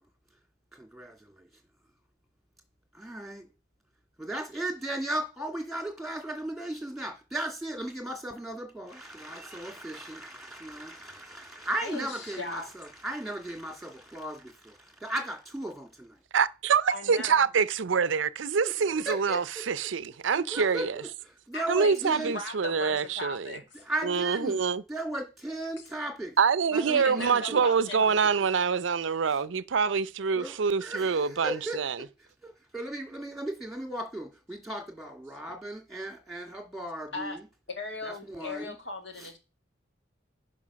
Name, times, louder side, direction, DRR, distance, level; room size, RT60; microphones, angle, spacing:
voice 1, 0.7-1.5 2.9-3.5 4.2-16.2 18.6-19.9 20.3-22.3 23.7-24.6 24.9-26.4 26.7-27.6 28.0-28.5 30.3-31.8 32.2-37.4 38.0-38.8 39.2-39.3, right 1 dB, ahead, 2.5 m, -36 dB
voice 2, 11.8-12.7 16.9-17.5 21.5-23.8 26.9-28.4 37.1-37.4 37.7-39.4, left 3 dB, 65° left, 2.0 m, -38 dB
voice 3, 16.3-21.0 21.7-23.5 24.0-24.8 26.4-31.9, right 6 dB, 75° right, 0.5 m, -26 dB
9.7 x 5.4 x 6.3 m
head